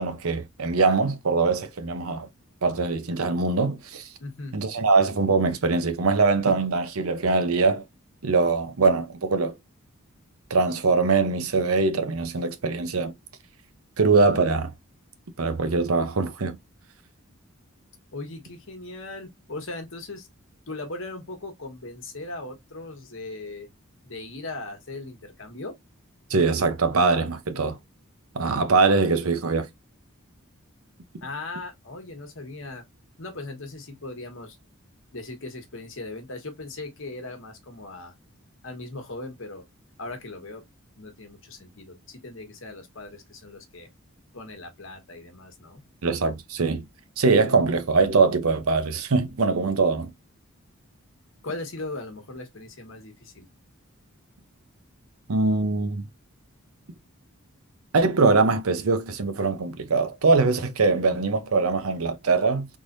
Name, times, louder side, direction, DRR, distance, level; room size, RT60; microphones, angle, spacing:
voice 1, 0.0-2.3 2.6-4.1 4.5-7.8 8.2-9.6 10.5-13.1 14.0-14.7 15.4-16.6 26.3-27.8 28.3-29.7 46.0-46.9 47.2-50.1 55.3-56.1 57.9-62.7, right 4 dB, 80° right, 0.8 m, -22 dB
voice 2, 4.2-4.6 18.1-20.3 20.7-23.7 24.0-25.7 31.2-32.8 33.2-34.6 35.1-38.1 38.6-39.6 40.0-40.6 41.0-43.9 44.3-45.8 51.4-53.5, left 2 dB, 65° left, 1.3 m, -38 dB
3.7 x 3.1 x 2.5 m
head